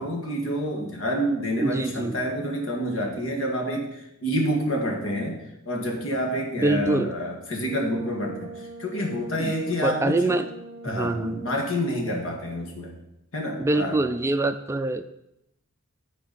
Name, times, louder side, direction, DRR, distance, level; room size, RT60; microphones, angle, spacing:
voice 1, 0.0-10.4 10.8-12.9 13.3-14.0, equal, 80° left, 0 dB, 1.9 m, -28 dB
voice 2, 1.6-2.2 6.6-7.1 9.4-9.5 9.8-10.5 10.8-11.4 13.6-15.0, right 2 dB, 15° right, 9 dB, 0.3 m, -24 dB
Brass instrument, 7.4-11.8, right 3 dB, 35° left, 3.4 m, -42 dB
13.5 x 4.7 x 4.1 m, 0.83 s
head